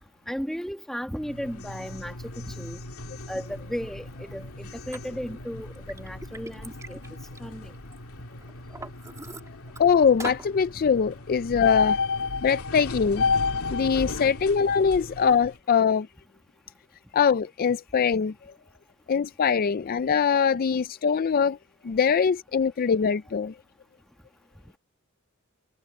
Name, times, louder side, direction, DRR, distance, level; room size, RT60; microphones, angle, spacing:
voice 1, 0.3-2.8 3.3-7.0 7.4-7.7, equal, ahead, 1.7 m, -35 dB
sound 1, 1.1-15.6, left 4 dB, 85° left, 2.3 m, -33 dB
Liquid, 4.9-5.0 5.6-8.0 8.4-9.8 10.2-10.5, right 2 dB, 15° right, 2.9 m, -41 dB
voice 2, 9.8-12.0 12.4-13.3 13.7-16.1 17.1-18.3 19.1-21.6 21.8-23.5, left 6 dB, 40° left, 0.4 m, -22 dB
head